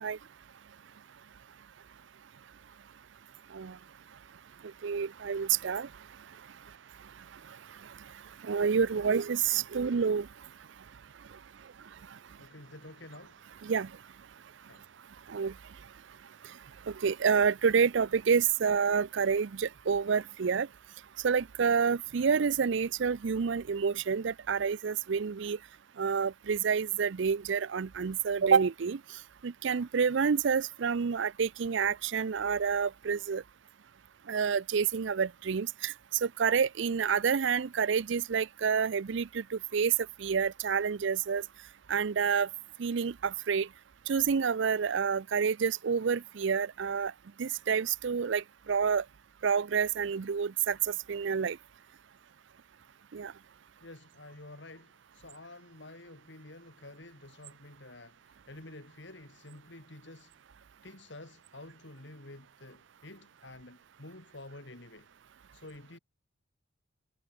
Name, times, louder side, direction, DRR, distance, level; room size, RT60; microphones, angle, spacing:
voice 1, 4.6-5.9 7.3-8.1 8.4-10.3 12.1-12.2 13.6-13.9 15.3-15.6 16.4-16.6 16.9-20.7 21.2-25.6 26.0-33.4 34.3-39.9 40.2-41.4 41.9-42.5 42.8-43.7 44.1-47.1 47.4-49.0 49.4-51.6 53.1-53.3, right 6 dB, 65° right, 0.5 m, -29 dB
voice 2, 12.4-13.4 14.7-14.8 53.8-60.3 60.8-65.1 65.5-66.0, left 2 dB, 60° left, 2.5 m, -50 dB
head